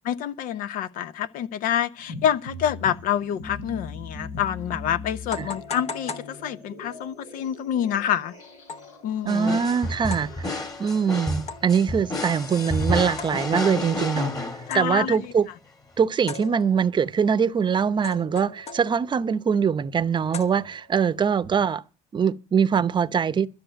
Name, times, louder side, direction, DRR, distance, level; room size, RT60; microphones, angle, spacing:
voice 1, 0.0-8.3 9.0-9.6 14.7-15.3, left 9 dB, 65° left, 0.8 m, -27 dB
sound 1, 2.0-15.3, left 3 dB, 90° left, 5.4 m, -42 dB
sound 2, 4.3-4.4 5.3-7.0 8.7-9.0 10.1-10.4 11.5-11.9 13.2-13.8 14.7-15.1 16.3-17.0 18.0-19.2 20.3-21.0, left 4 dB, 45° left, 1.1 m, -38 dB
voice 2, 9.2-14.3 14.7-15.5 16.0-21.8 22.1-23.5, right 7 dB, 30° right, 0.7 m, -23 dB
sound 3, 9.3-15.1, left 1 dB, 25° left, 2.1 m, -30 dB
12.5 x 6.6 x 9.0 m
supercardioid pair, 95°, 15 cm